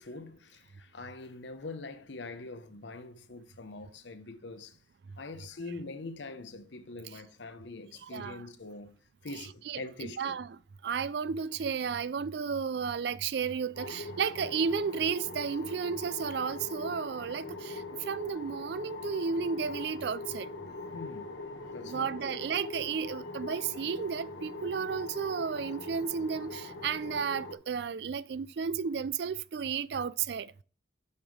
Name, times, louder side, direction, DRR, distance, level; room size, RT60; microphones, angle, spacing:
voice 1, 0.0-4.8 5.2-9.0 9.2-10.4 20.9-21.4 21.7-22.3, left 3 dB, 70° left, 0.9 m, -43 dB
voice 2, 8.0-8.4 9.4-20.5 21.8-30.5, right 6 dB, 60° right, 0.4 m, -33 dB
sound 1, 13.8-27.5, left 2 dB, 90° left, 1.4 m, -42 dB
6.9 x 5.3 x 6.3 m
head